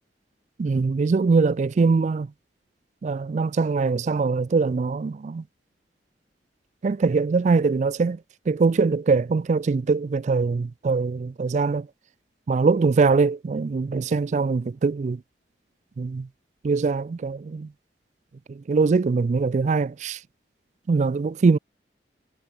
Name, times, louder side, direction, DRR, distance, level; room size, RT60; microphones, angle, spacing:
voice 1, 0.6-2.3 3.0-5.4 6.8-8.2 8.5-11.9 12.5-15.2 16.0-16.3 16.6-17.7 18.5-20.2 20.9-21.6, right 4 dB, 40° right, 0.3 m, -22 dB
head